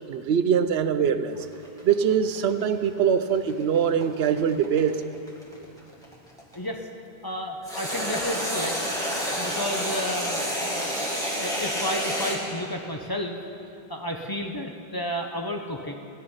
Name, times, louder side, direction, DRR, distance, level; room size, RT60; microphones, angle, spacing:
voice 1, 0.1-1.3 1.8-5.0, right 7 dB, 80° right, 10 dB, 0.9 m, -23 dB
sound 1, 1.4-6.5 7.6-12.4, equal, 5° left, 2.1 m, -29 dB
voice 2, 7.2-8.7 9.2-10.9 11.4-13.4 13.9-15.9, equal, 25° left, 2 dB, 0.9 m, -32 dB
16.5 x 11.0 x 5.6 m, 2.6 s
omnidirectional pair, 1.0 m